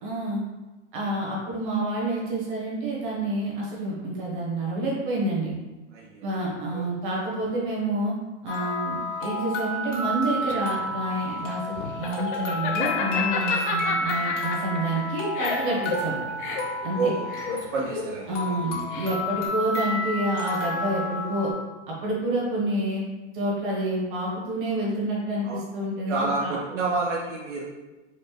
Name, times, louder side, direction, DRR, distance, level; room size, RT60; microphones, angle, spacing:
voice 1, 0.0-0.4 0.9-5.5 6.2-8.1 8.4-16.2 16.8-17.1 18.3-21.5 21.9-23.1 23.3-26.5, right 1 dB, 45° right, -4 dB, 1.4 m, -28 dB
voice 2, 5.9-6.2 6.7-6.9 15.7-15.9 17.0-18.5 25.4-25.6 26.1-27.6, right 3 dB, 80° right, -2 dB, 0.8 m, -29 dB
sound 1, 8.5-21.5, left 1 dB, 80° left, 1.4 m, -30 dB
Laughter, 10.0-19.5, left 5 dB, 45° left, 0.6 m, -32 dB
4.4 x 2.5 x 3.2 m, 1.1 s
hypercardioid pair, 160°, 36 cm